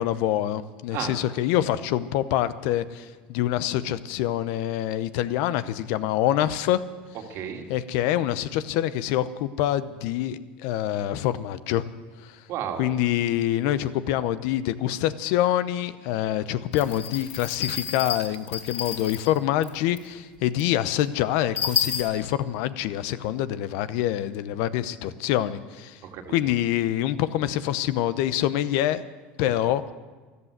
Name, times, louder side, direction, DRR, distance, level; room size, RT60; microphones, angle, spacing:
voice 1, 0.0-6.8 7.7-11.9 12.2-12.4 12.8-26.0 26.3-29.1 29.4-29.8, left 12 dB, 70° left, 14 dB, 0.8 m, -26 dB
voice 2, 7.3-7.7 12.5-12.9 26.0-26.5 29.6-29.9, right 9 dB, 60° right, 3 dB, 2.3 m, -34 dB
sound 1, 16.7-19.4 19.6-19.7 20.0-20.1 20.6-20.7 21.0-21.1 21.6-22.0, left 7 dB, 50° left, 5.9 m, -30 dB
13.5 x 12.5 x 8.1 m, 1.3 s
supercardioid pair, 100°, 5 cm